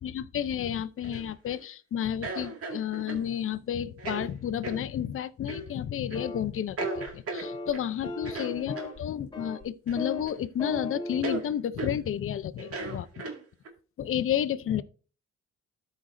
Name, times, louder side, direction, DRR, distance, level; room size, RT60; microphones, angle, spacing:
voice 1, 0.0-13.1 14.0-14.8, left 9 dB, 45° left, 0.6 m, -31 dB
sound 1, 1.0-1.6 2.2-3.3 4.0-4.3 4.6-4.8 5.5-5.7 6.1-6.3 6.8-7.9 8.3-9.0 9.9-10.4 10.7-10.8 11.2-11.4 11.8-12.0 12.6-13.7, right 3 dB, 50° right, 2.1 m, -36 dB
sound 2, 6.1-6.5 6.8-7.1 7.4-7.7 8.0-9.0 9.3-9.6 10.0-10.3 10.6-11.2, left 3 dB, 15° left, 3.3 m, -36 dB
13.0 x 5.1 x 2.6 m
cardioid pair, 90°, 30 cm